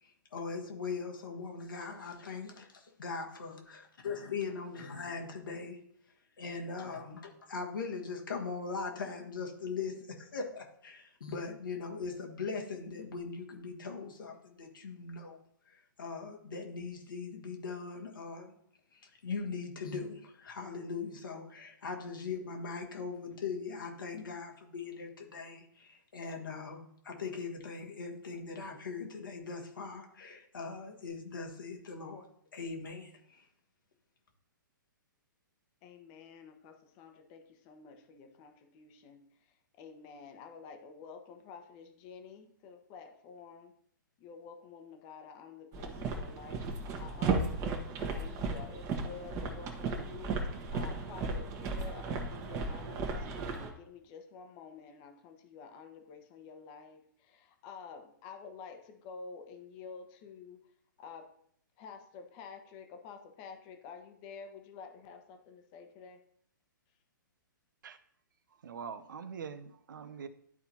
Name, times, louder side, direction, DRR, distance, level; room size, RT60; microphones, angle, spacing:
voice 1, 0.0-5.8 6.4-15.4 15.7-18.5 18.9-32.2 32.5-33.4, left 4 dB, 75° left, 1 dB, 1.8 m, -40 dB
voice 2, 35.8-39.2 39.8-43.7 44.2-50.3 50.7-60.6 61.0-61.3 61.8-66.2, left 5 dB, 35° left, 6 dB, 1.1 m, -50 dB
sound 1, 45.7-53.7, right 3 dB, 30° right, 1.3 m, -35 dB
voice 3, 68.6-70.3, right 6 dB, 70° right, 11 dB, 0.7 m, -43 dB
12.0 x 4.2 x 2.8 m, 0.66 s
hypercardioid pair, 125°, 11 cm